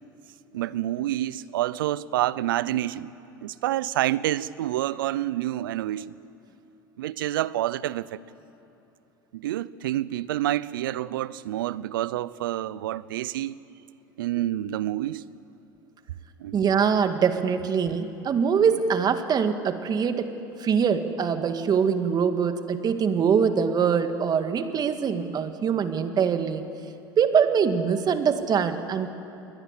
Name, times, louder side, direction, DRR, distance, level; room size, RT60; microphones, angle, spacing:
voice 1, 0.5-3.1 3.4-6.2 7.0-8.2 9.3-13.6 14.2-15.3 16.4-16.6, right 14 dB, 80° right, 0.7 m, -28 dB
voice 2, 16.5-20.3 20.6-26.6 27.2-29.1, right 6 dB, 35° right, 1.9 m, -23 dB
28.0 x 21.0 x 8.3 m
hypercardioid pair, 85°, 11 cm